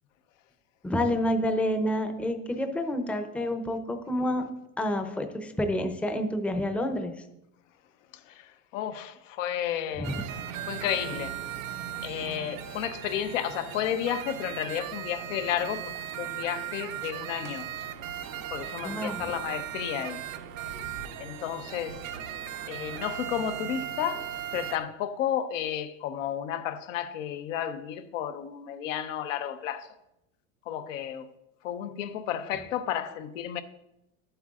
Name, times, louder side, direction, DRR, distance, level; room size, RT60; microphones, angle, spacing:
voice 1, 0.8-7.1 10.0-10.2 18.8-19.2, left 1 dB, 5° left, 0.7 m, -29 dB
voice 2, 8.7-10.1 10.7-11.3 12.0-15.8 16.2-17.6 18.5-20.2 21.2-22.0 22.7-24.3 24.5-29.9 30.7-31.2 31.6-33.6, left 10 dB, 75° left, 0.9 m, -32 dB
sound 1, 10.0-24.8, right 10 dB, 80° right, 0.9 m, -37 dB
11.0 x 7.9 x 2.5 m
supercardioid pair, 110°, 39 cm